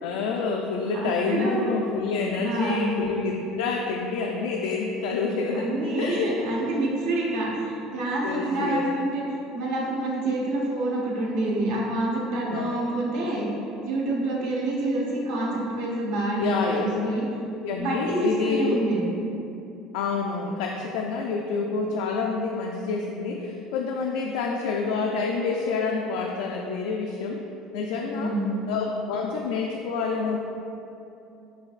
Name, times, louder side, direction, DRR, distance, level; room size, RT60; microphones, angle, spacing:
voice 1, 0.0-6.4 8.2-8.9 12.5-12.9 16.4-17.1 17.6-18.8 19.9-27.4 27.7-28.4 28.7-30.4, left 4 dB, 90° left, 0 dB, 0.3 m, -28 dB
voice 2, 0.9-1.6 2.4-2.9 5.5-9.2 9.5-13.5 13.8-17.3 17.8-19.1 28.1-28.6, right 2 dB, 70° right, -3 dB, 1.0 m, -27 dB
7.4 x 2.7 x 2.4 m, 2.8 s
cardioid pair, 170°, 0 cm